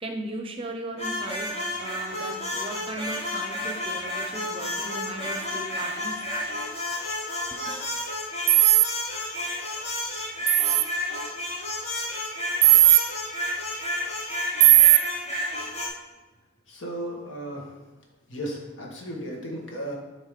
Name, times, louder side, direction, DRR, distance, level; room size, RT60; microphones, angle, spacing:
voice 1, 0.0-6.1 7.5-7.8, right 2 dB, 30° right, 4 dB, 0.7 m, -37 dB
sound 1, 1.0-15.9, left 1 dB, 35° left, 1.3 m, -31 dB
sound 2, 8.5-8.9 10.5-10.8 12.6-13.0 14.6-15.0, right 16 dB, 70° right, 0.4 m, -15 dB
voice 2, 16.7-17.6 18.3-20.0, right 1 dB, 70° left, -1 dB, 1.5 m, -34 dB
7.8 x 3.0 x 5.0 m, 1.2 s
head